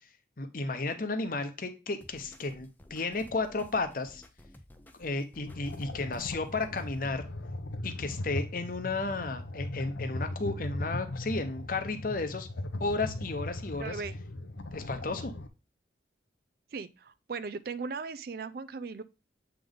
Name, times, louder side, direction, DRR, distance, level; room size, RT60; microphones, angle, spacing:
voice 1, 0.4-4.2 5.0-7.3 7.8-12.5 12.8-14.0 14.7-15.3, left 3 dB, 50° left, 0.8 m, -33 dB
sound 1, 2.0-7.1, left 1 dB, 10° left, 0.5 m, -54 dB
sound 2, 5.5-15.5, left 2 dB, 80° left, 0.7 m, -38 dB
voice 2, 13.8-14.1 15.1-15.3 16.7-19.0, right 4 dB, 55° right, 0.4 m, -38 dB
7.6 x 3.5 x 3.8 m
head